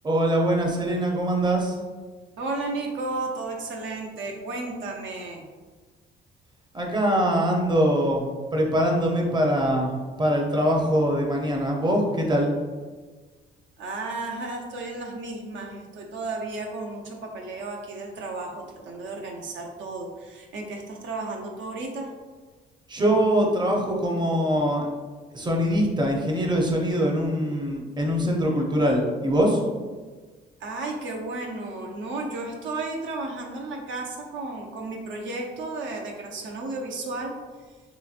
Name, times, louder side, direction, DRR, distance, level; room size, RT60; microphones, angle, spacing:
voice 1, 0.0-1.8 6.7-9.9 10.2-12.5 22.9-24.8 25.3-29.6, equal, 20° right, 0 dB, 0.6 m, -23 dB
voice 2, 2.4-5.5 13.8-22.1 30.6-37.3, right 2 dB, 70° right, 1 dB, 0.6 m, -33 dB
3.3 x 2.9 x 2.4 m, 1.4 s
cardioid pair, 90°, 20 cm